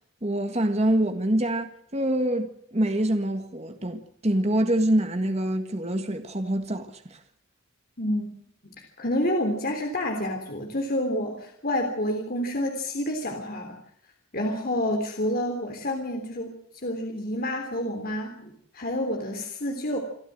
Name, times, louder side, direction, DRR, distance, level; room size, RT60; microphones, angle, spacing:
voice 1, 0.2-7.2, right 1 dB, 30° right, 1.7 m, -25 dB
voice 2, 8.0-8.3 8.8-13.8 14.3-20.0, left 1 dB, 45° left, 3.4 m, -29 dB
28.0 x 13.5 x 7.6 m
head